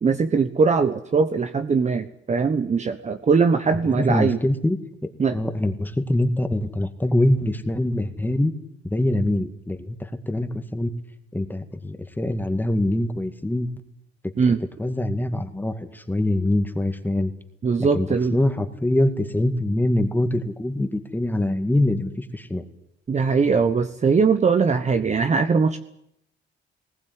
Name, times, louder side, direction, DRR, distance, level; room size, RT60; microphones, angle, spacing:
voice 1, 0.0-4.4 5.2-5.4 14.4-14.6 17.6-18.4 23.1-25.8, right 5 dB, 35° right, 9 dB, 1.1 m, -21 dB
voice 2, 3.9-4.8 5.0-8.5 8.8-10.9 11.3-13.7 14.8-17.3 17.8-22.6, left 1 dB, 10° left, 8 dB, 2.1 m, -24 dB
20.5 x 17.5 x 9.7 m, 0.76 s
cardioid pair, 90°, 20 cm